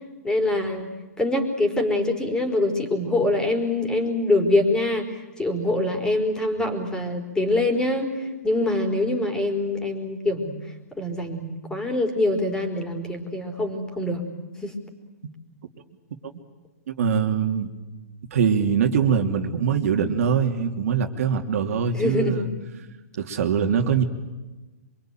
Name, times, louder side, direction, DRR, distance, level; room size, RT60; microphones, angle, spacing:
voice 1, 0.2-0.9 1.2-10.5 11.0-14.2 14.6-14.7 21.9-22.5, left 2 dB, 10° left, 4 dB, 4.5 m, -24 dB
voice 2, 16.9-17.7 18.3-22.5 23.2-24.0, right 7 dB, 60° right, 5 dB, 2.9 m, -23 dB
26.0 x 23.5 x 9.2 m, 1.2 s
hypercardioid pair, 130°, 9 cm